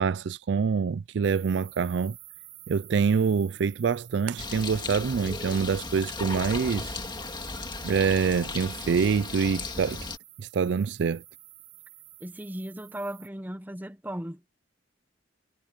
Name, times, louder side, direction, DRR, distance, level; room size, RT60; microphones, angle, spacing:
voice 1, 0.0-2.2 2.7-7.0 7.8-10.1 10.4-11.2, right 6 dB, 65° right, 0.4 m, -26 dB
sound 1, 1.2-13.3, right 15 dB, 80° right, 2.4 m, -50 dB
Bird, 4.4-10.2, left 3 dB, 25° left, 2.0 m, -36 dB
voice 2, 12.2-14.4, right 1 dB, 10° right, 1.0 m, -36 dB
head